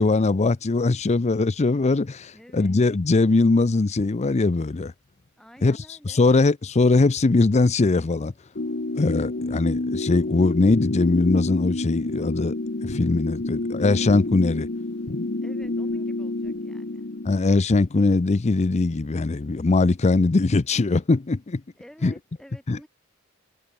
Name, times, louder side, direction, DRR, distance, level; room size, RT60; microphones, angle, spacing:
voice 1, 0.0-4.9 5.6-5.8 6.1-8.3 9.0-12.5 12.8-14.7 17.3-21.6 22.0-22.1 22.7-22.8, left 3 dB, 35° left, 0.5 m, -21 dB
voice 2, 2.3-2.8 5.4-6.2 15.4-17.1 21.7-22.9, equal, 5° left, 7.7 m, -50 dB
sound 1, 8.5-17.3, left 2 dB, 50° left, 1.1 m, -28 dB
head